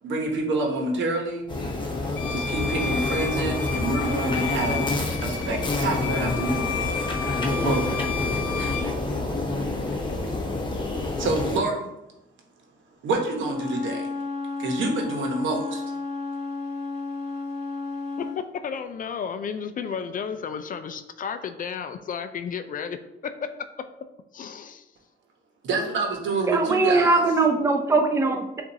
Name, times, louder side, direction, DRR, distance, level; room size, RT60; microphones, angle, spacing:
voice 1, 0.0-1.5 2.3-4.9 5.2-6.8 7.6-8.0 8.6-8.9 11.2-11.9 13.0-14.1 14.6-15.8 25.6-27.2, right 2 dB, 70° right, 1 dB, 1.0 m, -27 dB
sound 1, 1.5-11.6, left 2 dB, 25° left, 0.8 m, -27 dB
Bowed string instrument, 2.2-8.9, left 6 dB, 80° left, 0.8 m, -33 dB
Wind instrument woodwind instrument, 13.3-18.4, left 3 dB, 30° right, 1.0 m, -32 dB
voice 2, 18.2-23.0 23.2-23.7 24.3-24.8, left 6 dB, 45° left, 10 dB, 0.4 m, -33 dB
voice 3, 26.5-28.6, right 3 dB, 15° right, 4 dB, 0.5 m, -21 dB
6.7 x 2.5 x 2.7 m, 0.91 s
cardioid pair, 90°, 20 cm